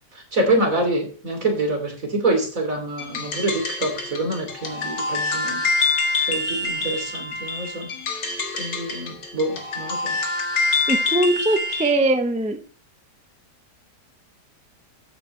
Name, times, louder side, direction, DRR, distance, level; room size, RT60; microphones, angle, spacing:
voice 1, 0.1-5.6 6.2-8.2 8.6-10.2, right 2 dB, 50° right, 3 dB, 3.5 m, -26 dB
sound 1, 3.0-12.0, left 3 dB, 85° left, 2.4 m, -26 dB
voice 2, 10.9-12.6, right 1 dB, 5° right, 6 dB, 0.6 m, -21 dB
13.5 x 8.6 x 3.3 m, 0.39 s
omnidirectional pair, 1.8 m